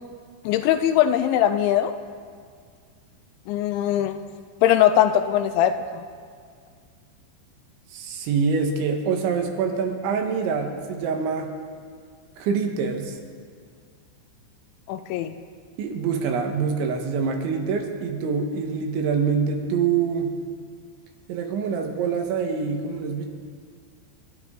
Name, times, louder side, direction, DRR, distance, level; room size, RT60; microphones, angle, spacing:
voice 1, 0.5-2.0 3.5-4.2 4.6-6.0 14.9-15.4, left 11 dB, 85° left, 10 dB, 2.9 m, -21 dB
voice 2, 7.9-11.5 12.4-13.2 15.8-20.3 21.3-23.3, right 5 dB, 75° right, 3 dB, 3.7 m, -25 dB
27.5 x 12.0 x 3.8 m, 2.1 s
omnidirectional pair, 5.5 m